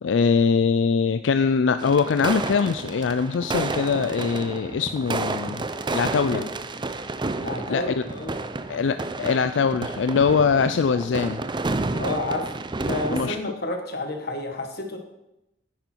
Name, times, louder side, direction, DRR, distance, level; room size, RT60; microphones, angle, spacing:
voice 1, 0.0-5.7 5.9-6.4 7.7-8.0 8.7-11.4 13.1-13.4, left 5 dB, 85° left, 11 dB, 0.4 m, -22 dB
sound 1, 1.8-13.4, right 3 dB, 25° right, 0.6 m, -30 dB
voice 2, 7.3-8.5 11.9-12.5 12.8-15.0, left 2 dB, 60° left, 4 dB, 1.7 m, -30 dB
10.0 x 9.3 x 4.5 m, 0.89 s
head